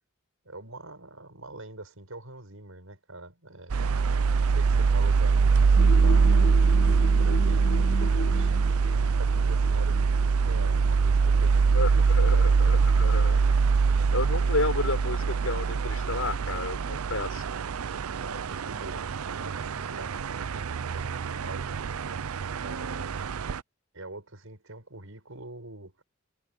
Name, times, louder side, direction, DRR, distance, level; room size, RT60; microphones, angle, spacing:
voice 1, 0.4-3.9 4.5-6.7 7.2-12.9 18.2-21.7 22.6-23.2 23.9-26.0, right 2 dB, 70° right, 6.3 m, -44 dB
sound 1, 3.7-23.6, right 5 dB, 85° right, 0.5 m, -24 dB
sound 2, 5.8-13.3, left 2 dB, 55° left, 1.7 m, -38 dB
voice 2, 11.7-13.4 14.1-17.4, left 2 dB, 75° left, 6.8 m, -31 dB
head